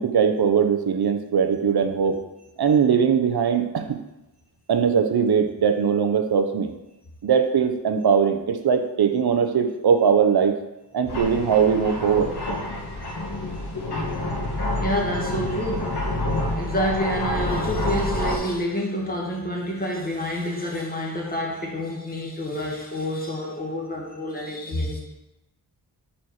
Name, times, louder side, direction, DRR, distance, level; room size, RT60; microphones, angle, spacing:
voice 1, 0.0-2.2 2.6-4.0 4.7-6.7 7.2-10.6 10.9-12.3, right 7 dB, 70° right, 7 dB, 0.9 m, -20 dB
sound 1, 11.1-18.3, left 1 dB, 75° left, 1.9 m, -28 dB
voice 2, 14.8-16.0 16.3-25.0, equal, 20° left, -3 dB, 2.1 m, -28 dB
8.6 x 4.4 x 4.9 m, 0.94 s
wide cardioid pair, 110°, 40 cm